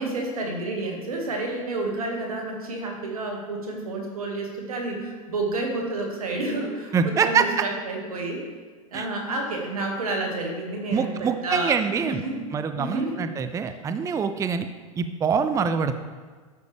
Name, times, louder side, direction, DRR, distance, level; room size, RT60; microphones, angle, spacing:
voice 1, 0.0-8.4 8.9-12.4 12.8-13.2, right 2 dB, 85° right, 1 dB, 1.9 m, -30 dB
voice 2, 6.9-7.5 8.9-9.1 10.9-12.2 12.5-14.7 15.0-15.9, right 6 dB, 15° right, 9 dB, 0.5 m, -24 dB
11.0 x 6.8 x 3.4 m, 1.5 s
hypercardioid pair, 100°, 18 cm